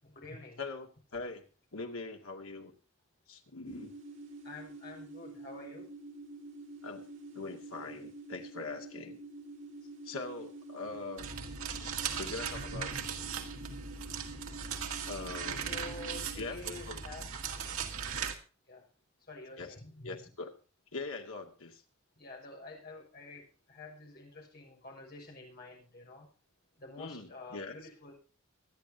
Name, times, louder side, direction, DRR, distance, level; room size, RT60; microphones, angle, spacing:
voice 1, 0.0-0.6 4.4-5.9 15.7-17.3 18.7-18.9 19.3-20.2 22.2-26.3 26.8-28.1, left 2 dB, 45° left, -1 dB, 6.2 m, -48 dB
voice 2, 0.6-1.4 1.7-2.7 3.3-3.9 6.8-7.0 7.3-9.2 10.0-11.3 11.8-13.1 13.7-13.8 15.1-15.8 16.4-17.0 19.6-19.7 20.0-20.5 20.9-21.8 27.0-27.7, left 3 dB, 80° left, 3 dB, 2.3 m, -42 dB
sound 1, 3.7-16.5, right 2 dB, 60° right, 2.2 m, -48 dB
sound 2, 11.2-18.4, right 6 dB, 85° right, 1.8 m, -38 dB
24.0 x 9.6 x 2.8 m, 0.34 s
head